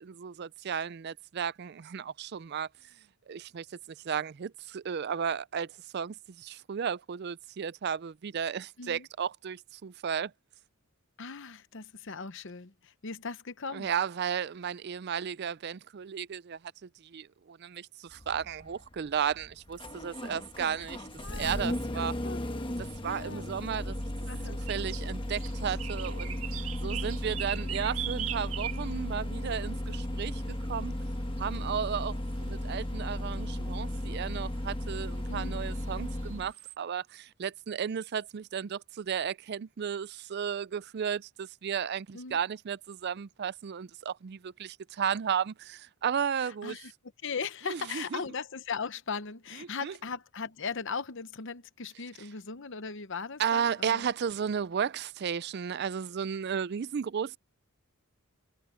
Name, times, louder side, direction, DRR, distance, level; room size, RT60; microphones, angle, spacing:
voice 1, 0.0-2.7 3.3-10.3 13.7-22.1 22.8-24.0 24.5-26.4 26.8-30.9 31.4-46.8 47.7-48.2 49.8-49.9 53.4-57.4, right 7 dB, 50° right, 0.4 m, -34 dB
voice 2, 11.2-13.9 20.8-20.9 21.2-22.7 23.0-23.5 24.3-24.6 26.8-27.1 35.3-35.6 42.1-42.4 46.4-46.9 47.2-54.1, left 5 dB, 60° left, 0.9 m, -39 dB
Engine starting, 18.1-36.5, left 1 dB, 25° left, 1.2 m, -35 dB
sound 1, 24.7-25.1 25.4-29.0 30.2-30.3 31.5-31.6 32.5-32.6 32.8-32.9 33.4-33.5 35.0-35.1 35.8-36.7, right 12 dB, 70° right, 1.7 m, -39 dB
head